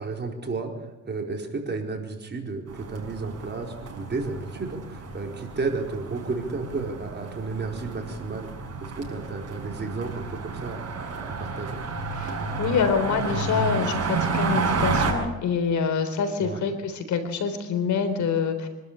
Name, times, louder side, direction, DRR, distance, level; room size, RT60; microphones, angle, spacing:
voice 1, 0.0-8.5 8.8-11.8 16.4-16.6, right 3 dB, 35° right, 2 dB, 4.6 m, -32 dB
sound 1, 2.7-15.1, right 4 dB, 55° right, 6.5 m, -31 dB
voice 2, 12.1-18.7, left 6 dB, 70° left, 8 dB, 3.8 m, -26 dB
25.5 x 12.5 x 8.8 m, 1.1 s
cardioid pair, 90°, 30 cm